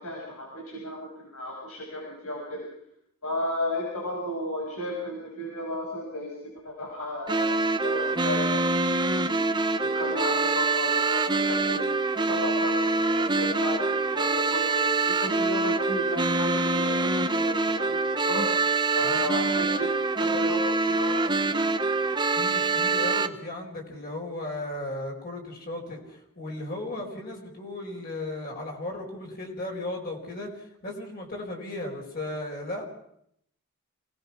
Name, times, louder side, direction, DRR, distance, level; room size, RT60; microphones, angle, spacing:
voice 1, 0.0-2.7 3.2-9.4 9.8-11.8 12.2-18.5 18.9-19.9 20.2-21.5, left 1 dB, 80° left, -2 dB, 6.2 m, -34 dB
sound 1, 7.3-23.3, right 3 dB, 20° right, 0.9 m, -25 dB
voice 2, 19.0-19.3 22.3-32.8, left 1 dB, 45° left, 0 dB, 4.9 m, -36 dB
28.5 x 19.0 x 6.0 m, 0.72 s
head